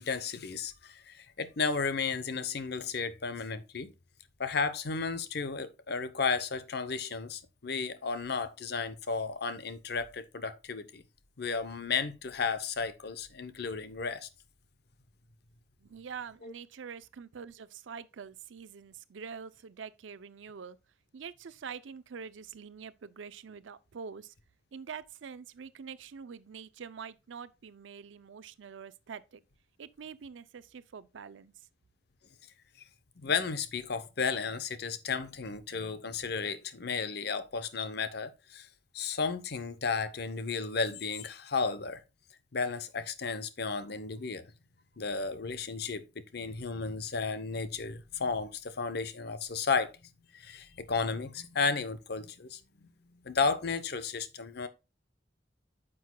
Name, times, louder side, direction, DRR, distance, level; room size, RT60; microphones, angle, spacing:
voice 1, 0.0-3.9 4.4-11.0 11.4-14.3 16.4-16.5 33.2-38.7 38.9-42.0 42.5-44.5 45.0-46.0 46.3-49.9 50.3-52.6 53.2-54.7, left 5 dB, 60° left, 0.8 m, -33 dB
voice 2, 15.8-20.8 21.1-24.3 24.7-29.4 29.8-31.5, right 6 dB, 85° right, 0.5 m, -45 dB
9.4 x 6.2 x 2.2 m
head